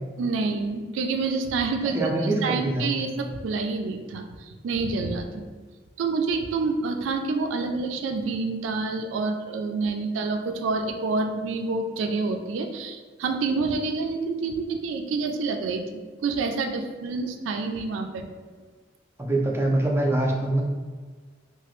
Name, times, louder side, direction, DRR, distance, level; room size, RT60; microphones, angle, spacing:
voice 1, 0.2-5.5 6.0-15.8 16.2-18.3, right 4 dB, 80° right, 5 dB, 0.3 m, -28 dB
voice 2, 1.9-2.9 19.2-20.6, right 1 dB, 15° right, -1 dB, 0.4 m, -24 dB
2.9 x 2.4 x 3.0 m, 1.5 s
head